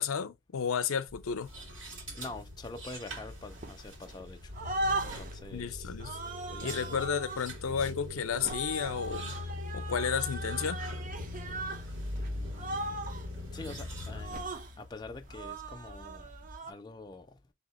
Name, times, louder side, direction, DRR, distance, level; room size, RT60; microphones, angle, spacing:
voice 1, 0.0-1.5 5.5-6.2 6.6-9.3 9.7-10.8, left 7 dB, 75° left, 0.5 m, -32 dB
sound 1, 1.1-16.6, equal, 60° right, 1.6 m, -45 dB
sound 2, 1.1-15.3, left 2 dB, 75° right, 1.6 m, -43 dB
voice 2, 2.2-4.5 5.0-5.9 6.5-7.0 12.2-12.9 13.5-14.5 14.8-16.3 16.7-17.3, left 3 dB, 20° left, 0.4 m, -45 dB
sound 3, 3.5-4.2 4.5-5.4 6.0-7.5 8.3-11.9 12.1-12.3 12.5-13.3 14.1-14.7 15.3-16.7, right 2 dB, 40° right, 0.5 m, -38 dB
3.4 x 2.8 x 4.1 m
head